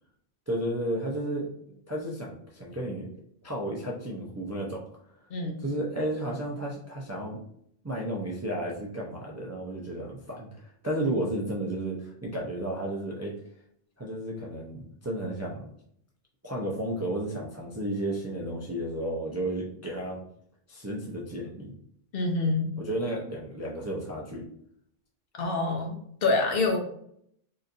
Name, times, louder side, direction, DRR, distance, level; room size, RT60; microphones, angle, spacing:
voice 1, 0.5-3.1 3.4-4.8 5.6-7.4 7.8-13.4 14.0-15.6 16.4-20.2 20.7-21.7 22.8-24.5, right 1 dB, 25° right, -4 dB, 0.4 m, -33 dB
voice 2, 22.1-22.7 25.4-26.8, left 3 dB, 65° left, 2 dB, 0.9 m, -26 dB
3.8 x 2.8 x 2.5 m, 0.69 s
omnidirectional pair, 1.1 m